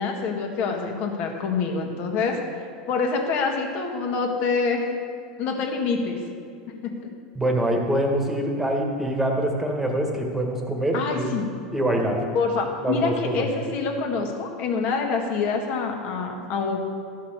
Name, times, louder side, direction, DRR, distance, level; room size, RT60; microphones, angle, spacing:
voice 1, 0.0-2.4 2.9-4.8 5.4-6.2 6.8-6.9 10.9-11.5 12.3-16.8, left 4 dB, 55° left, 2 dB, 1.8 m, -26 dB
voice 2, 7.3-11.3 11.7-12.2 12.8-13.4, right 1 dB, 5° right, 1 dB, 1.6 m, -24 dB
13.0 x 5.6 x 6.7 m, 2.3 s
supercardioid pair, 115°, 4 cm